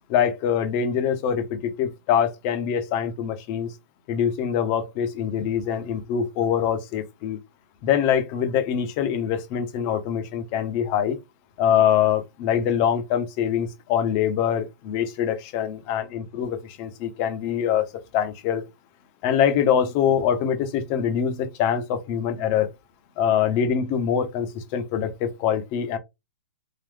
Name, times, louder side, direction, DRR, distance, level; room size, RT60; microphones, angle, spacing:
voice 1, 0.1-3.7 4.1-7.4 7.8-11.2 11.6-17.9 18.1-18.6 19.2-22.7 23.2-26.0, left 8 dB, 40° left, 0.9 m, -24 dB
3.8 x 2.6 x 3.3 m
hypercardioid pair, 130°, 9 cm